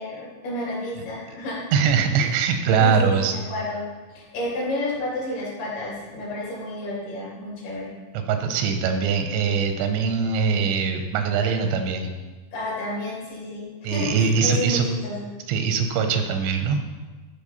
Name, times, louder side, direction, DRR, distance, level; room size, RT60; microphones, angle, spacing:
voice 1, 0.0-1.6 2.1-2.3 2.8-3.8 4.1-7.9 12.5-15.3, left 1 dB, 55° left, -6 dB, 5.0 m, -31 dB
voice 2, 1.7-3.4 8.3-12.1 13.8-14.9 15.5-16.8, right 6 dB, 90° right, 6 dB, 3.0 m, -22 dB
13.5 x 5.5 x 4.1 m, 1.3 s
omnidirectional pair, 5.3 m